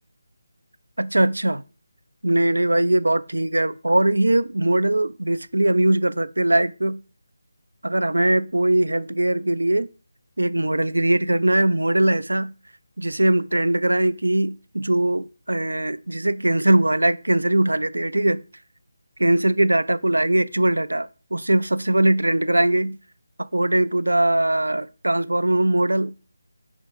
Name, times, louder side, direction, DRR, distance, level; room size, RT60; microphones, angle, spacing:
voice 1, 1.0-1.6 2.2-7.0 7.8-9.9 10.4-12.5 13.0-18.4 19.2-23.0 23.4-26.1, right 1 dB, 80° right, 0.3 m, -21 dB
5.1 x 2.9 x 3.6 m
figure-of-eight pair, 155°, 0 cm